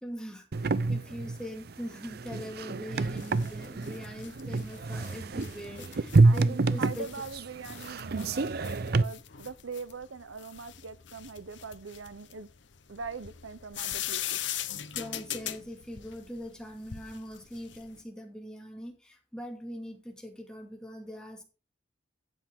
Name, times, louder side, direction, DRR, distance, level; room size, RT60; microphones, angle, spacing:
voice 1, 0.0-7.1 14.9-21.4, equal, 5° left, 2.3 m, -42 dB
sound 1, 0.5-9.0, right 3 dB, 50° right, 0.5 m, -27 dB
sound 2, 3.0-18.0, left 11 dB, 70° left, 0.9 m, -41 dB
voice 2, 6.2-12.5 12.9-14.2, right 5 dB, 90° right, 0.7 m, -42 dB
12.0 x 8.4 x 3.6 m
head